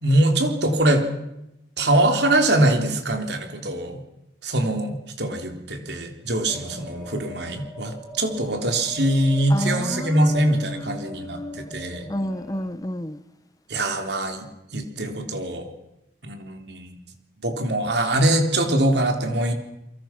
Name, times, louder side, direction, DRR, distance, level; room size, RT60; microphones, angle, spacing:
voice 1, 0.0-1.0 1.8-4.0 4.4-12.1 13.7-14.5 14.7-15.7 16.2-16.9 17.4-19.5, right 1 dB, 65° right, 3.7 m, -23 dB
sound 1, 6.5-12.7, left 1 dB, 5° right, 7.0 m, -41 dB
voice 2, 9.5-11.7 12.1-13.2, left 1 dB, 20° left, 0.9 m, -31 dB
29.0 x 24.0 x 6.1 m
head